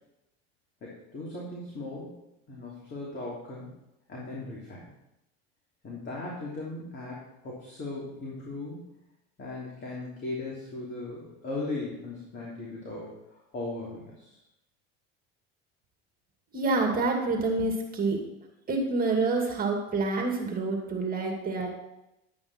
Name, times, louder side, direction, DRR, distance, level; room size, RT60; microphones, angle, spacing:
voice 1, 0.8-2.1 2.5-3.7 4.1-4.8 5.8-8.8 9.4-14.4, left 2 dB, 35° left, -5 dB, 3.2 m, -38 dB
voice 2, 16.5-18.2 18.7-21.7, right 3 dB, 25° right, 2 dB, 2.3 m, -27 dB
11.0 x 8.7 x 4.4 m, 0.89 s
supercardioid pair, 115°, 31 cm